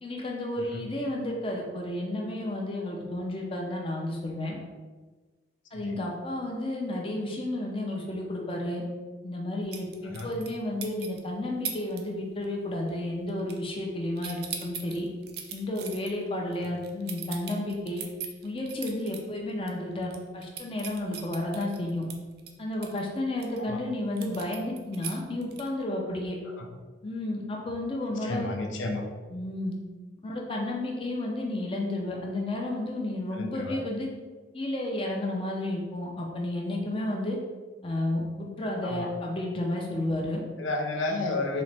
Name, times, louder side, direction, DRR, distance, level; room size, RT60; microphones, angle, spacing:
voice 1, 0.0-4.6 5.7-8.8 9.2-15.1 15.5-18.0 18.4-22.0 22.6-26.4 27.0-28.5 29.3-29.8 30.2-34.1 34.5-37.4 37.8-40.4, left 1 dB, 30° left, 0 dB, 0.5 m, -32 dB
voice 2, 0.6-0.9 5.7-6.0 10.0-10.3 16.6-16.7 23.6-23.8 26.5-26.7 28.2-29.1 33.3-33.8 38.8-39.1 40.6-41.6, left 2 dB, 85° left, 2 dB, 0.6 m, -32 dB
sound 1, 9.7-10.6 10.8-11.2 11.6-12.0 12.3-12.6 12.9-13.9 14.2-19.2 19.6-19.7 20.0-23.6 24.2-25.8, right 8 dB, 55° right, 0.4 m, -39 dB
4.1 x 2.9 x 3.3 m, 1.3 s
head